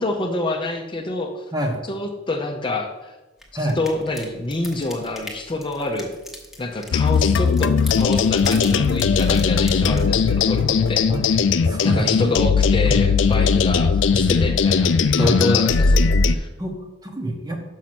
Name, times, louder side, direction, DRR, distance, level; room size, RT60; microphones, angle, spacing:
voice 1, 0.0-1.4 1.9-3.2 3.8-6.2 6.6-11.4 11.8-14.9 15.2-16.0 16.3-16.5, left 2 dB, 25° left, 3 dB, 0.7 m, -27 dB
voice 2, 1.5-1.8 3.5-3.8 11.1-11.2 11.6-12.4 12.8-13.1 15.2-15.4 16.6-17.6, right 1 dB, 20° right, 3 dB, 1.1 m, -27 dB
sound 1, 3.4-10.4, left 1 dB, ahead, 1.1 m, -41 dB
sound 2, 6.9-16.3, left 5 dB, 70° left, 0.4 m, -18 dB
6.4 x 5.8 x 5.9 m, 1.1 s
head